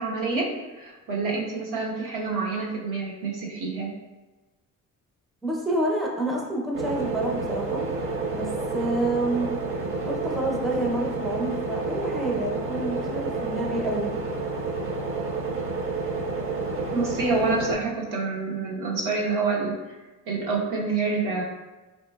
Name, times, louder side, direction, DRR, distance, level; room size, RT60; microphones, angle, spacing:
voice 1, 0.0-3.9 16.9-20.0 20.3-21.4, right 4 dB, 75° right, -3 dB, 1.0 m, -27 dB
voice 2, 5.4-7.8 8.3-8.5 8.7-9.5 10.0-14.2, right 1 dB, ahead, -1 dB, 0.5 m, -28 dB
sound 1, 6.7-17.7, right 3 dB, 40° right, 0.7 m, -29 dB
4.2 x 2.9 x 2.2 m, 1.1 s
cardioid pair, 105°, 33 cm